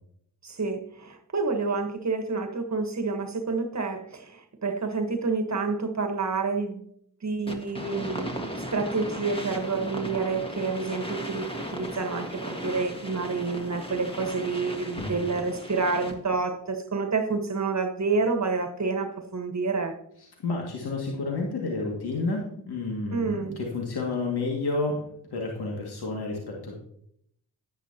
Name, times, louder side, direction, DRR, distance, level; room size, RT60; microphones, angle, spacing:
voice 1, 0.4-6.8 7.2-20.0 23.1-23.6, right 4 dB, 40° right, 6 dB, 1.4 m, -29 dB
sound 1, 7.5-16.4, equal, 15° left, 1.8 m, -37 dB
voice 2, 20.4-25.0 25.3-26.8, left 3 dB, 65° left, -1 dB, 2.2 m, -30 dB
10.0 x 10.0 x 2.9 m, 0.71 s
supercardioid pair, 40°, 42 cm